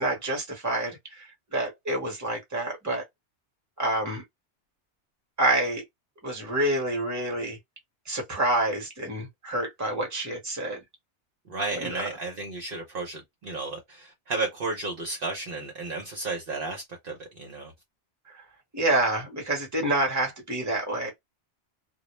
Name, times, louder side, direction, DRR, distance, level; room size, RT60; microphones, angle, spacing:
voice 1, 0.0-3.0 3.8-4.2 5.4-5.8 6.2-7.6 8.1-10.8 11.7-12.1 18.3-18.4 18.7-21.1, right 1 dB, 15° right, 1.0 m, -28 dB
voice 2, 11.5-17.7, right 3 dB, 55° right, 0.8 m, -33 dB
2.3 x 2.0 x 3.0 m
omnidirectional pair, 1.2 m